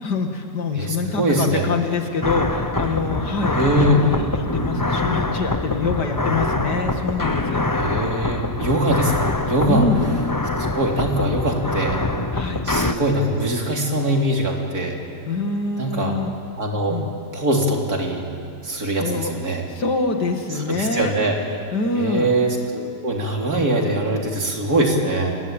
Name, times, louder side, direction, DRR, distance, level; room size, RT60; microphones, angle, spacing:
voice 1, 0.0-3.6 3.9-7.7 9.7-10.0 12.3-12.6 15.3-16.3 16.9-17.1 19.0-19.3 19.7-21.1 21.7-22.3, left 3 dB, 85° left, 4 dB, 2.9 m, -25 dB
voice 2, 0.7-1.6 3.5-4.1 7.7-9.9 10.6-12.0 12.6-15.0 15.8-16.2 16.6-17.0 17.3-18.3 18.6-19.7 20.5-21.4 22.0-25.3, right 1 dB, 65° right, 1 dB, 3.9 m, -22 dB
sound 1, 2.2-12.9, left 2 dB, 15° left, 0.8 m, -24 dB
29.0 x 21.5 x 9.2 m, 2.5 s
omnidirectional pair, 1.7 m